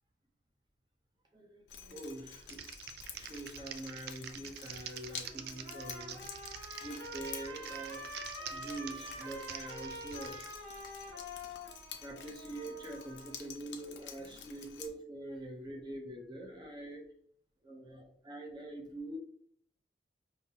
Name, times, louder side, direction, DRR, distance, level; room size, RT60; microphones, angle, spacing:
voice 1, 1.3-2.6 3.1-6.2 6.5-10.4 11.0-11.2 12.0-17.0 17.7-19.2, right 1 dB, 25° right, 1 dB, 0.7 m, -45 dB
Drip, 1.7-14.9, left 8 dB, 70° left, 0.6 m, -50 dB
Typing, 2.4-10.6, right 8 dB, 55° right, 0.3 m, -47 dB
Trumpet, 4.9-13.4, equal, 85° right, 1.3 m, -47 dB
5.2 x 2.8 x 2.8 m, 0.62 s
head